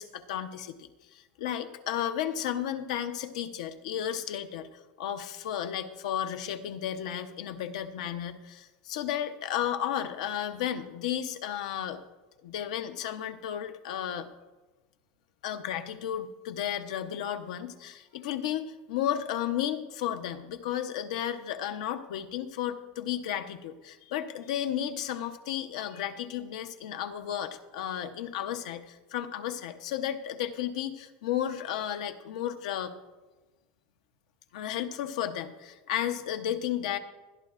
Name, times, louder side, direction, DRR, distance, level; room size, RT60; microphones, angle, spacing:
voice 1, 0.0-12.0 12.4-14.3 15.4-32.9 34.5-37.0, left 10 dB, 75° left, 8 dB, 0.8 m, -33 dB
20.0 x 11.5 x 2.5 m, 1.2 s
supercardioid pair, 170°, 4 cm